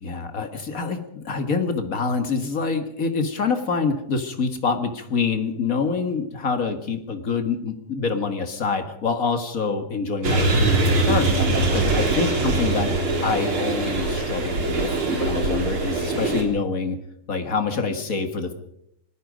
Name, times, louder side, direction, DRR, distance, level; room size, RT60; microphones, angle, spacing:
voice 1, 0.0-12.9 13.2-17.0 17.3-18.5, left 4 dB, 40° left, 7 dB, 1.3 m, -26 dB
sound 1, 10.2-16.4, right 2 dB, 40° right, 4.0 m, -22 dB
26.5 x 19.5 x 5.3 m, 0.78 s
omnidirectional pair, 3.9 m